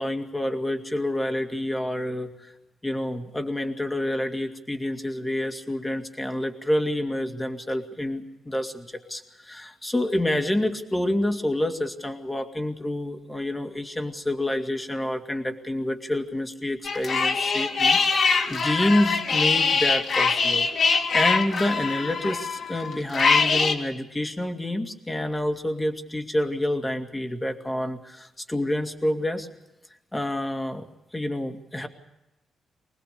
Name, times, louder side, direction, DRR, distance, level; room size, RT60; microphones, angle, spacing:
voice 1, 0.0-2.5 2.8-29.5 30.1-31.9, left 1 dB, 10° left, 5 dB, 2.3 m, -28 dB
sound 1, 16.8-23.7, left 4 dB, 55° left, 2.6 m, -23 dB
24.5 x 20.0 x 6.8 m, 0.97 s
cardioid pair, 120°, 0 cm